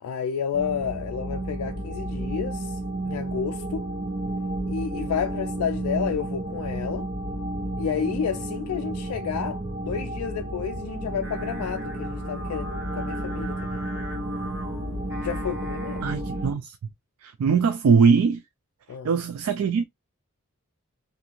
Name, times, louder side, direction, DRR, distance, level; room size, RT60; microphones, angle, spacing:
voice 1, 0.0-3.9 4.6-7.1 7.8-14.0 15.2-16.1 18.9-19.1, left 7 dB, 85° left, 0.3 m, -31 dB
sound 1, 0.5-16.5, right 1 dB, 55° right, 1.0 m, -32 dB
Singing, 11.2-16.4, equal, 15° right, 1.3 m, -41 dB
voice 2, 16.0-16.8 17.2-18.4 19.0-19.8, right 5 dB, 75° right, 0.3 m, -21 dB
2.6 x 2.4 x 2.9 m
head